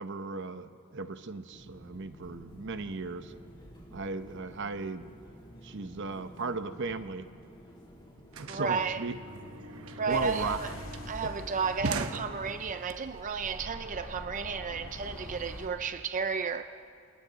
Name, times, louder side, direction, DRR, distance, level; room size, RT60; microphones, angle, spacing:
voice 1, 0.0-3.3 3.9-5.1 5.6-7.3 8.3-9.2 10.1-10.6 11.2-11.3, right 3 dB, 55° right, 0.8 m, -36 dB
sound 1, 1.5-11.1, equal, 20° left, 3.0 m, -52 dB
sound 2, 7.4-7.5 7.7-12.9, right 3 dB, 80° right, 1.0 m, -40 dB
voice 2, 8.5-9.0 10.0-10.7 11.1-16.6, right 5 dB, 35° right, 0.5 m, -33 dB
sound 3, 10.1-15.7, left 1 dB, 65° left, 2.5 m, -45 dB
29.0 x 27.5 x 4.0 m
head